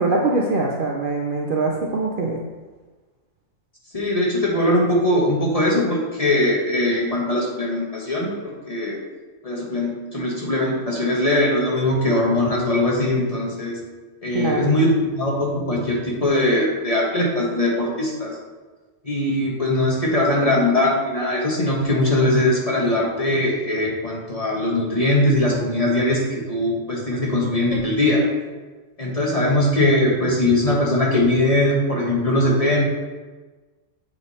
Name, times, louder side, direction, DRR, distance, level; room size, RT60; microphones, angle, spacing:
voice 1, 0.0-2.4 14.3-14.8, right 3 dB, 50° right, -2 dB, 0.8 m, -23 dB
voice 2, 3.9-9.0 9.4-13.8 14.2-18.4 19.0-26.2 26.5-28.2 29.0-32.8, left 1 dB, 30° left, -3 dB, 1.3 m, -21 dB
7.4 x 4.9 x 4.2 m, 1.3 s
omnidirectional pair, 1.4 m